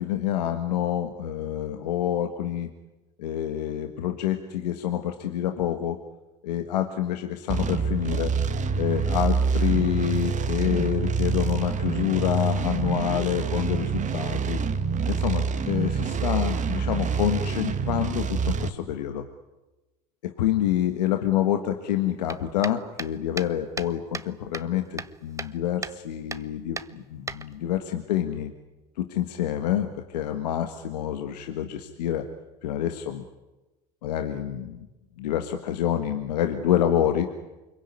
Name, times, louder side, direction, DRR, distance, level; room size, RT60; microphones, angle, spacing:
voice 1, 0.0-2.7 3.2-6.0 6.4-8.3 8.7-14.6 15.1-19.2 20.2-28.5 29.0-32.3 32.6-33.3 34.0-34.9 35.2-37.3, left 11 dB, 85° left, 6 dB, 1.6 m, -27 dB
sound 1, 7.5-18.7, right 5 dB, 40° right, 1.9 m, -26 dB
sound 2, 22.3-24.3 24.5-25.6 25.8-26.0 26.3-26.5 26.8-27.8, right 4 dB, 15° right, 0.9 m, -36 dB
25.5 x 22.5 x 9.7 m, 1.1 s
hypercardioid pair, 85°, 20 cm